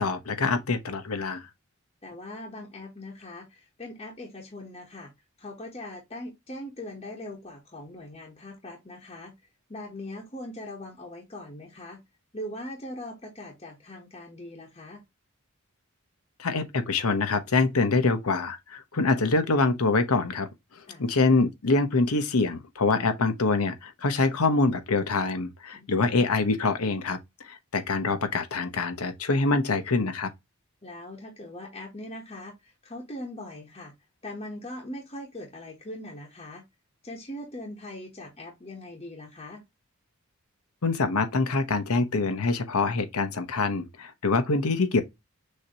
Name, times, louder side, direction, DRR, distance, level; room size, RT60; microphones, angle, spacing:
voice 1, 0.0-1.5 16.4-30.3 40.8-45.0, left 3 dB, 85° left, 0.9 m, -25 dB
voice 2, 2.0-5.1 5.4-9.3 9.7-12.0 12.3-15.0 20.9-21.0 25.7-26.0 30.8-33.9 34.2-36.6 37.0-39.6, left 1 dB, 25° left, 1.0 m, -41 dB
6.4 x 2.9 x 2.8 m
head